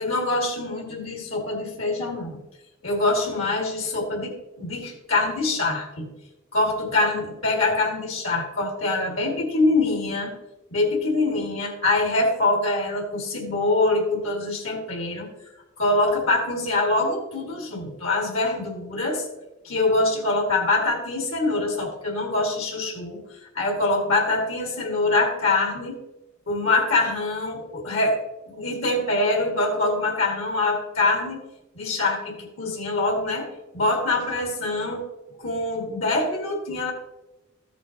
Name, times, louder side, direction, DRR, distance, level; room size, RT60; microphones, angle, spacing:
voice 1, 0.0-2.4 2.8-6.1 6.5-10.3 10.7-15.3 15.8-19.2 19.6-23.2 23.5-26.0 26.5-28.2 28.5-31.5 31.7-35.1 35.4-36.9, left 2 dB, 80° left, 0 dB, 1.9 m, -24 dB
14.0 x 7.3 x 2.8 m, 0.99 s
head